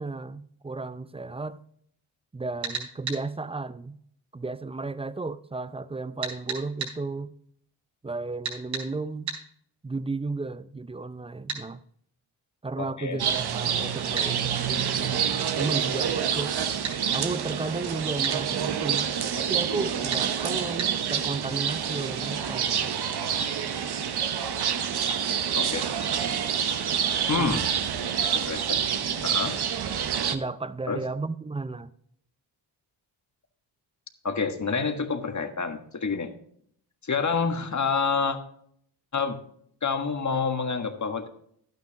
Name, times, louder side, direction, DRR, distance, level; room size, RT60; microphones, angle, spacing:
voice 1, 0.0-1.6 2.3-4.0 4.3-7.3 8.0-9.3 9.8-11.8 12.6-16.5 17.1-23.0 27.4-27.6 30.3-31.9, right 3 dB, 10° right, 0.5 m, -34 dB
sound 1, 2.6-3.2 6.2-7.0 8.4-8.9 9.3-9.4 11.5-11.6 14.2-14.3 16.8-17.0 18.2-18.4 20.1-20.3 20.8-20.9, right 6 dB, 70° right, 4.3 m, -32 dB
voice 2, 12.8-13.2 25.5-25.9 27.3-27.7 28.3-28.8 29.2-29.6 30.9-31.0 34.2-36.3 37.0-38.4 39.1-39.4 39.8-41.3, left 5 dB, 35° left, 1.6 m, -28 dB
sound 2, 13.2-30.4, right 8 dB, 50° right, 1.0 m, -27 dB
11.5 x 9.4 x 2.9 m
supercardioid pair, 50°, 49 cm